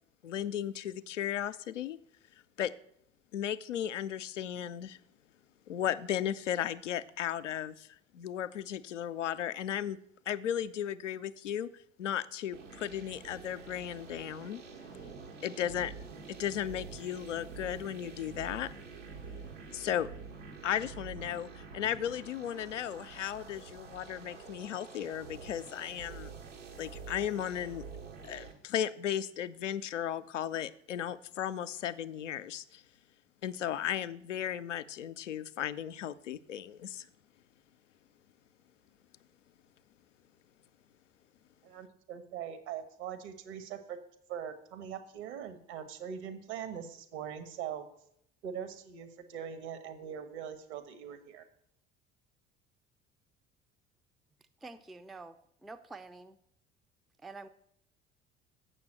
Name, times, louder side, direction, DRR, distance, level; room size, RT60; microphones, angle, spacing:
voice 1, 0.2-2.0 2.6-2.7 3.3-5.0 5.7-7.9 8.1-10.0 10.3-11.7 12.0-14.6 15.4-15.9 16.3-18.7 19.7-20.1 20.6-26.3 26.8-27.8 28.2-32.8 33.4-37.1, left 10 dB, 80° left, 12 dB, 0.5 m, -35 dB
sound 1, 12.5-28.5, right 5 dB, 80° right, 1.4 m, -47 dB
voice 2, 41.6-44.0 44.3-47.9 48.4-51.4, right 8 dB, 60° right, 9 dB, 1.3 m, -42 dB
voice 3, 54.6-56.4 57.2-57.5, right 3 dB, ahead, 10 dB, 0.4 m, -47 dB
7.2 x 6.2 x 7.7 m, 0.71 s
figure-of-eight pair, 60°, 36 cm